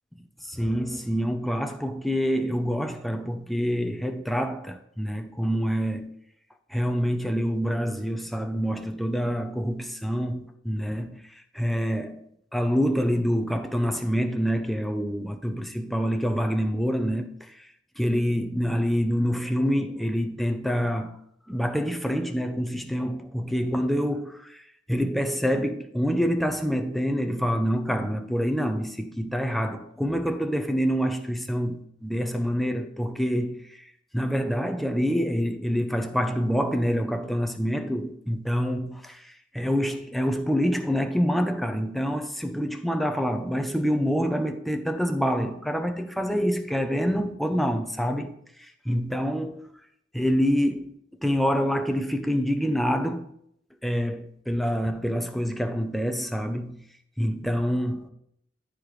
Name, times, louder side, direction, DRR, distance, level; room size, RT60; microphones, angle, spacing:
voice 1, 0.4-6.1 6.7-12.2 12.5-17.7 18.0-21.2 21.5-48.3 48.6-49.7 50.1-50.9 51.2-53.3 53.8-56.8 57.2-58.1, equal, ahead, 0.7 m, -26 dB
13.5 x 5.0 x 3.2 m
head